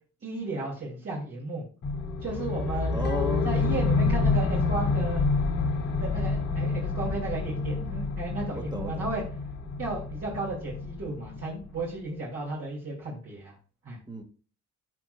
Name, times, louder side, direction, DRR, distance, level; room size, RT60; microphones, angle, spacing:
voice 1, 0.2-1.7 2.2-3.1 3.4-5.2 6.0-9.2 9.8-13.5 13.8-14.0, right 2 dB, 50° right, -5 dB, 2.5 m, -34 dB
sound 1, 1.8-11.9, left 3 dB, 75° left, 2.1 m, -28 dB
voice 2, 2.9-3.8 8.6-9.2 14.1-14.2, right 1 dB, 15° right, 3 dB, 1.7 m, -35 dB
sound 2, 3.0-4.7 5.0-5.1, left 14 dB, 35° left, 0.5 m, -37 dB
12.5 x 5.1 x 2.3 m, 0.38 s
cardioid pair, 90°, 30 cm